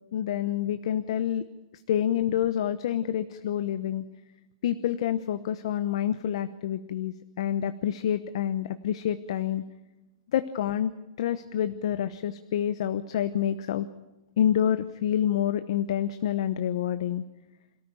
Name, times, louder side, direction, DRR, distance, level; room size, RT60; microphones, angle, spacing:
voice 1, 0.1-1.4 1.9-4.0 4.6-9.6 10.3-10.9 11.2-13.9 14.4-17.2, left 10 dB, 60° left, 11 dB, 1.0 m, -27 dB
27.0 x 14.0 x 9.2 m, 1.0 s
hypercardioid pair, 160°, 3 cm